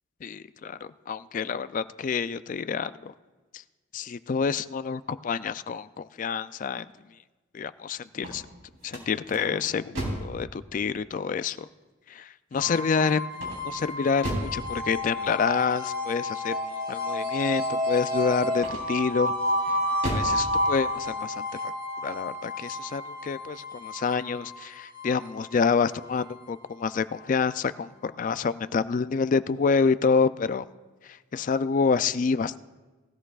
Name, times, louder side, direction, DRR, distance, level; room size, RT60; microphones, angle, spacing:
voice 1, 0.2-3.1 3.9-6.9 7.5-8.4 8.8-11.6 12.1-13.2 13.6-19.3 20.1-21.7 22.0-30.6 31.3-32.6, left 5 dB, 40° left, 14 dB, 0.3 m, -27 dB
sound 1, 8.1-10.4 13.3-14.6 18.5-19.1 19.6-20.4, right 1 dB, 75° right, 3.9 m, -34 dB
sound 2, 12.5-27.5, left 1 dB, 40° right, 1.3 m, -31 dB
19.0 x 13.5 x 2.4 m, 1.3 s
head